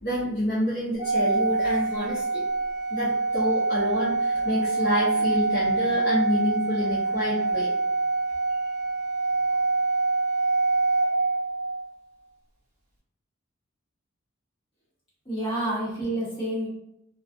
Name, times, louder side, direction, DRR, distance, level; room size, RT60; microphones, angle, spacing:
voice 1, 0.0-2.4 2.9-7.7, left 1 dB, 50° left, -8 dB, 0.7 m, -28 dB
Organ, 1.0-11.8, right 3 dB, 35° right, 0.8 m, -25 dB
voice 2, 15.2-16.7, right 1 dB, 25° left, -9 dB, 1.3 m, -28 dB
2.3 x 2.3 x 2.5 m, 0.78 s
head